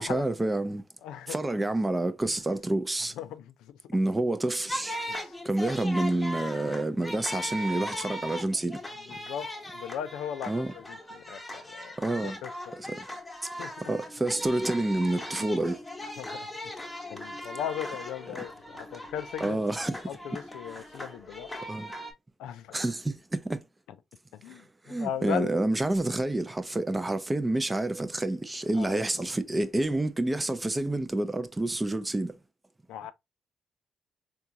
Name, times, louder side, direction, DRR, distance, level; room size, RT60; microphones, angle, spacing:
voice 1, 0.0-0.8 1.3-3.1 3.9-5.0 5.4-8.8 10.5-10.7 12.0-12.4 12.8-13.1 13.9-15.8 19.4-20.0 20.7-20.8 21.7-21.9 22.7-23.6 24.5-32.3, right 2 dB, 15° right, 0.5 m, -28 dB
voice 2, 1.0-1.4 3.2-3.7 5.1-5.3 9.1-9.5 9.7-12.5 13.6-13.7 16.2-16.5 17.1-19.6 20.1-21.5 22.4-22.8 24.4-25.5 28.7-29.1 32.9-33.1, left 10 dB, 90° left, 0.4 m, -37 dB
sound 1, 4.7-22.1, equal, 15° left, 0.9 m, -39 dB
3.8 x 2.3 x 2.8 m
cardioid pair, 90°, 0 cm